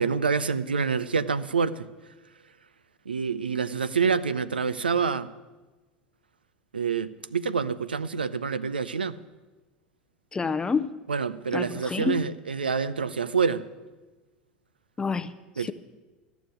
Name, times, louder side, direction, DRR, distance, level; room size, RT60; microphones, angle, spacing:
voice 1, 0.0-1.9 3.1-5.3 6.7-9.2 11.1-13.6 15.6-15.7, right 5 dB, 80° right, 0.6 m, -27 dB
voice 2, 10.3-10.9 11.5-12.3 15.0-15.7, left 5 dB, 15° left, 0.7 m, -29 dB
14.0 x 7.1 x 9.5 m
figure-of-eight pair, 75°, 5 cm